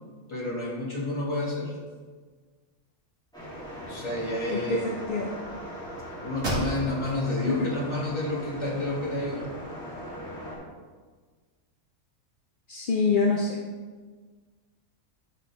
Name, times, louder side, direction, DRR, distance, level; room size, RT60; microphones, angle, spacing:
voice 1, 0.3-1.8 3.8-4.9 6.2-9.5, left 1 dB, 20° left, -5 dB, 2.1 m, -30 dB
sound 1, 3.3-10.6, equal, 5° left, 2.7 m, -40 dB
voice 2, 4.5-5.3 7.5-7.7 12.7-13.6, left 4 dB, 50° left, 0 dB, 0.7 m, -26 dB
sound 2, 6.4-7.2 7.7-7.8 8.3-9.2, right 1 dB, 70° right, 2.6 m, -33 dB
11.5 x 5.6 x 3.5 m, 1.5 s
omnidirectional pair, 1.4 m